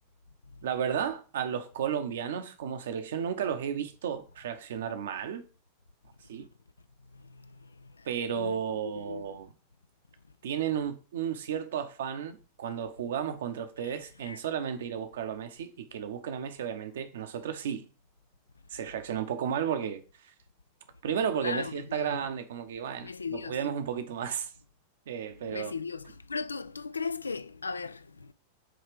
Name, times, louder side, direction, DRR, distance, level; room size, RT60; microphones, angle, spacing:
voice 1, 0.6-5.4 6.3-6.5 8.0-9.5 10.4-17.8 18.7-20.3 21.0-24.5 25.1-25.7, right 8 dB, 60° right, 0.9 m, -33 dB
voice 2, 7.1-8.1 8.3-9.4 13.8-13.9 14.2-14.4 21.4-22.3 23.0-23.6 25.5-28.3, left 4 dB, 75° left, 0.4 m, -38 dB
7.7 x 3.3 x 4.9 m
figure-of-eight pair, 90°, 0 cm